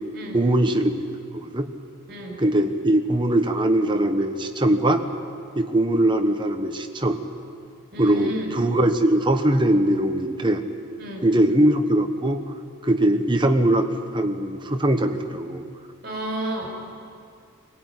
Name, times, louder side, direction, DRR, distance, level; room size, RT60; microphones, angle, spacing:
voice 1, 0.3-1.0 1.3-1.7 2.4-5.0 5.5-7.2 8.0-10.6 11.2-12.4 12.8-13.9 14.1-15.6, right 1 dB, 20° right, 6 dB, 1.1 m, -21 dB
voice 2, 2.1-2.4 7.9-8.5 11.0-11.3 16.0-16.7, right 1 dB, 45° right, 0 dB, 5.6 m, -31 dB
23.5 x 16.0 x 9.7 m, 2.3 s
head